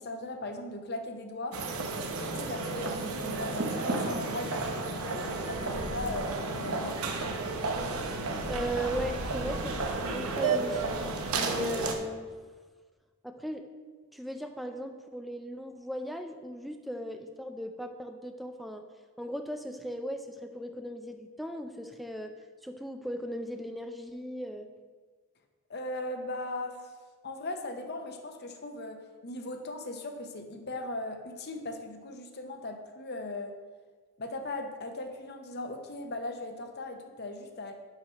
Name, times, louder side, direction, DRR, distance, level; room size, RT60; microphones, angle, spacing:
voice 1, 0.0-1.6 2.2-7.0 25.7-26.9 27.2-33.5 34.2-37.7, left 2 dB, 50° left, 5 dB, 0.7 m, -38 dB
sound 1, 1.5-11.9, right 3 dB, 85° right, 0.9 m, -32 dB
voice 2, 8.5-11.0 11.3-12.3 13.2-13.7 14.1-18.8 19.2-22.3 22.6-24.7, equal, ahead, 5 dB, 0.4 m, -37 dB
5.7 x 5.7 x 5.6 m, 1.5 s
head